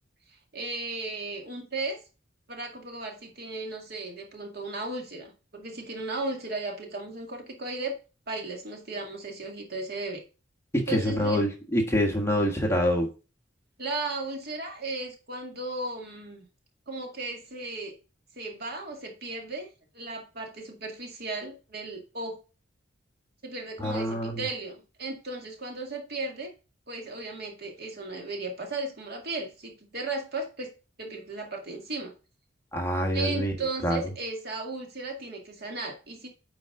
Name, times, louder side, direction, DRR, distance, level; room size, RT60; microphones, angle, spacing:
voice 1, 0.5-2.0 2.5-8.0 8.3-10.2 10.9-11.4 13.8-16.5 16.9-17.9 18.4-19.7 19.9-22.4 23.4-26.5 26.9-30.7 31.0-32.1 33.1-36.3, right 2 dB, 55° right, 2 dB, 2.0 m, -35 dB
voice 2, 10.7-13.1 23.8-24.4 32.7-33.5 33.8-34.0, equal, 15° left, 1 dB, 1.4 m, -26 dB
9.3 x 4.7 x 3.7 m, 0.33 s
head